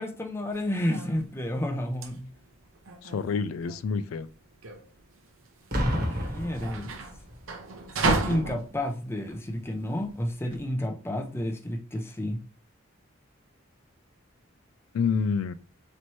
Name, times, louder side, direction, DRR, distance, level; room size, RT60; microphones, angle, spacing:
voice 1, 0.0-2.3 6.0-6.9 8.0-12.4, left 1 dB, 10° left, 0.6 m, -31 dB
sound 1, 0.5-10.6, right 3 dB, 75° right, 0.8 m, -34 dB
voice 2, 3.0-4.3 14.9-15.5, left 5 dB, 85° left, 0.3 m, -28 dB
Boom, 5.7-7.5 8.3-8.6, equal, 45° right, 1.2 m, -30 dB
4.2 x 3.1 x 3.0 m
head